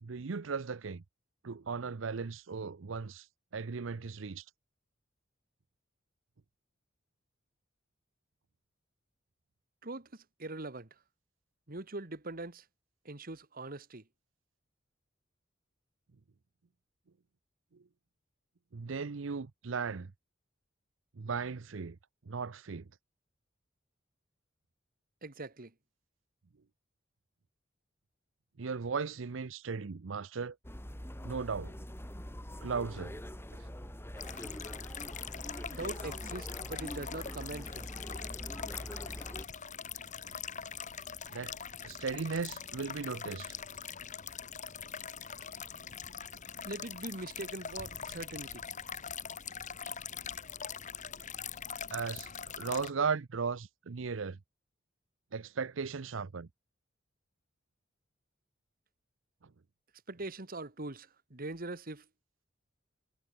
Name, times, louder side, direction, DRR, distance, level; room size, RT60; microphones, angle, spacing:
voice 1, 0.0-1.0 1.4-3.3 3.5-4.4 17.7-17.8 18.7-20.1 21.1-22.0 22.3-22.9 28.6-30.6 31.2-31.8 32.6-33.1 41.3-41.5 41.8-43.5 51.9-52.3 52.5-54.4 55.3-56.5 59.4-59.5, right 5 dB, 80° right, 0.6 m, -36 dB
voice 2, 9.8-11.0 11.7-12.7 13.0-14.0 25.2-25.7 35.7-37.9 46.6-48.6 60.1-62.1, right 2 dB, 50° right, 2.0 m, -42 dB
sound 1, 30.6-39.4, equal, 10° left, 3.1 m, -44 dB
sound 2, 34.2-52.9, left 7 dB, 40° left, 1.8 m, -43 dB
head